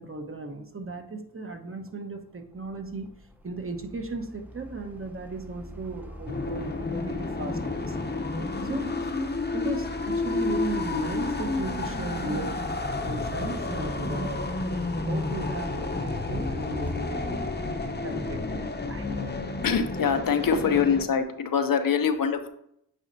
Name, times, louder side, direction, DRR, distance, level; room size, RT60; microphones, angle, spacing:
voice 1, 0.0-8.0 8.6-9.1 9.5-12.6 13.0-14.5 15.0-17.4 18.0-19.1, right 2 dB, 35° right, 4 dB, 1.1 m, -36 dB
sound 1, 1.9-2.0 2.5-17.7, equal, 5° right, 0.7 m, -41 dB
sound 2, 6.3-21.0, left 3 dB, 30° left, 0.8 m, -31 dB
voice 2, 19.6-22.5, left 6 dB, 70° left, 9 dB, 0.7 m, -24 dB
8.8 x 4.1 x 2.7 m, 0.72 s
cardioid pair, 45°, 35 cm